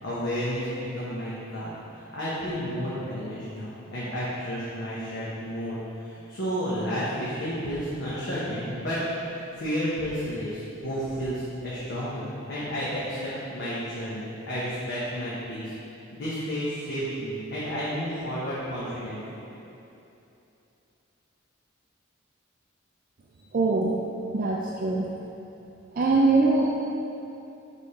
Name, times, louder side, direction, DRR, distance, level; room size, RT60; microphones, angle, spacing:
voice 1, 0.0-15.7 16.1-19.4, equal, 60° left, -9 dB, 1.0 m, -31 dB
voice 2, 23.5-24.0 24.3-25.1 26.0-26.7, right 3 dB, 45° right, -3 dB, 0.4 m, -22 dB
6.6 x 3.6 x 4.1 m, 2.9 s
head